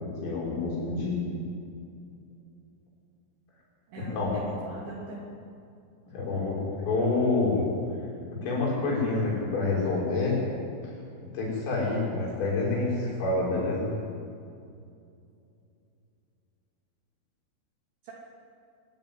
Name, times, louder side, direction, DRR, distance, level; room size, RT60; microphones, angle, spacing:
voice 1, 0.0-1.4 4.0-4.4 6.1-7.7 8.4-10.4 11.3-13.9, left 3 dB, 75° left, -4 dB, 9.1 m, -27 dB
voice 2, 3.9-5.2 18.0-18.1, right 3 dB, 65° right, -5 dB, 5.0 m, -40 dB
25.0 x 16.0 x 9.8 m, 2.4 s
omnidirectional pair, 5.9 m